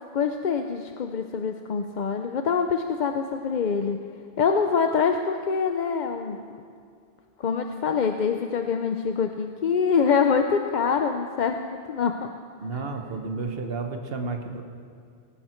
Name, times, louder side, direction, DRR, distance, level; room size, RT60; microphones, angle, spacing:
voice 1, 0.1-4.0 4.4-6.4 7.4-12.3, left 6 dB, 50° left, 6 dB, 0.7 m, -25 dB
voice 2, 12.6-14.6, right 4 dB, 60° right, 4 dB, 1.3 m, -31 dB
18.5 x 16.0 x 4.4 m, 2.2 s
omnidirectional pair, 1.1 m